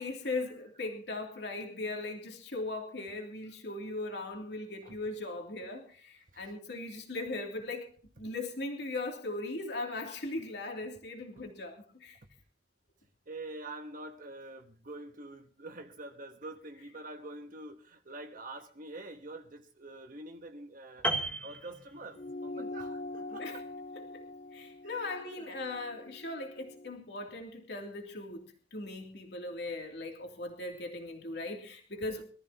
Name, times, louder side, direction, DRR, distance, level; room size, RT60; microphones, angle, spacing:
voice 1, 0.0-7.9 8.2-12.2 22.6-22.7 23.3-23.6 24.1-24.2 24.5-28.4 28.7-32.2, left 2 dB, 70° left, 3.0 m, -39 dB
voice 2, 13.3-23.6 24.8-25.6 32.0-32.2, right 2 dB, 50° right, 1.2 m, -46 dB
Piano, 21.0-22.5 22.8-23.0, right 1 dB, 10° left, 1.5 m, -34 dB
sound 1, 22.1-26.9, left 2 dB, 50° left, 0.9 m, -43 dB
23.5 x 14.0 x 2.9 m
head